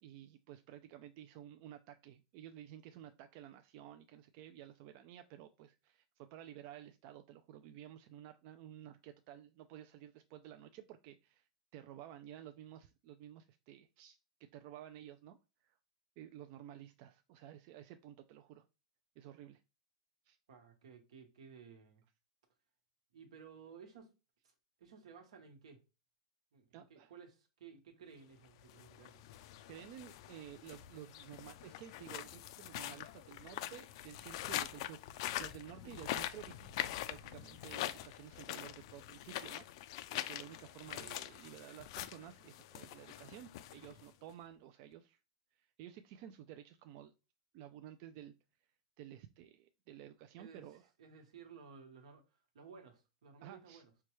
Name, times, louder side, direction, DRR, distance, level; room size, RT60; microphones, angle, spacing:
voice 1, 0.0-15.8 16.2-18.6 19.2-19.6 20.3-20.4 26.7-27.1 29.7-45.2 45.5-47.1 47.5-48.3 49.0-50.8 53.4-53.8, right 11 dB, 50° right, 0.3 m, -53 dB
voice 2, 20.5-22.0 23.1-24.1 24.4-25.8 26.5-29.2 35.9-36.0 50.4-50.7 51.0-53.9, right 6 dB, 80° right, 1.1 m, -56 dB
Pebbles On Flat Beach, 28.6-44.3, left 13 dB, 60° left, 0.3 m, -44 dB
4.5 x 2.2 x 3.0 m
supercardioid pair, 130°, 3 cm